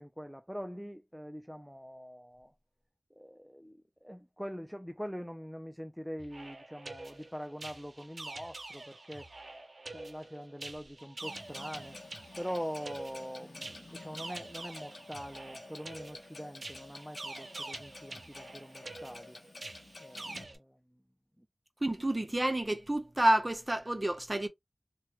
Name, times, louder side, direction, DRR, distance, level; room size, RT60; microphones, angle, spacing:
voice 1, 0.0-2.5 3.1-9.3 9.9-12.0 12.4-19.4 20.0-21.0 21.4-21.5, equal, ahead, 0.4 m, -43 dB
sound 1, 6.2-20.6, right 2 dB, 70° right, 0.6 m, -46 dB
Clock, 11.2-20.4, left 3 dB, 85° left, 0.7 m, -51 dB
voice 2, 21.8-24.5, right 1 dB, 30° right, 0.7 m, -29 dB
3.1 x 2.2 x 2.8 m
wide cardioid pair, 50°, 0 cm